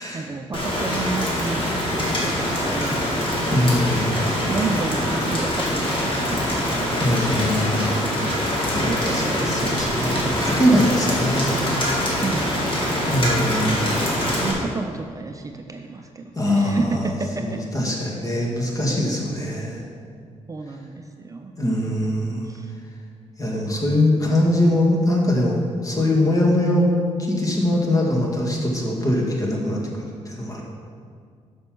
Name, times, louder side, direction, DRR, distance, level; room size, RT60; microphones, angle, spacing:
voice 1, 0.0-1.6 2.2-3.8 4.2-6.4 6.7-7.1 8.8-10.2 12.0-12.9 14.3-17.6 20.5-21.5 22.5-22.7, right 3 dB, 30° right, 4 dB, 0.5 m, -31 dB
Rain, 0.5-14.5, equal, 45° left, 2.2 m, -24 dB
voice 2, 3.5-4.2 7.0-7.9 8.7-11.6 13.1-13.9 16.4-17.1 17.4-19.8 21.6-22.4 23.4-26.9 27.2-30.6, left 1 dB, 30° left, -1 dB, 1.8 m, -22 dB
6.7 x 5.4 x 6.0 m, 2.1 s
cardioid pair, 85°, 12 cm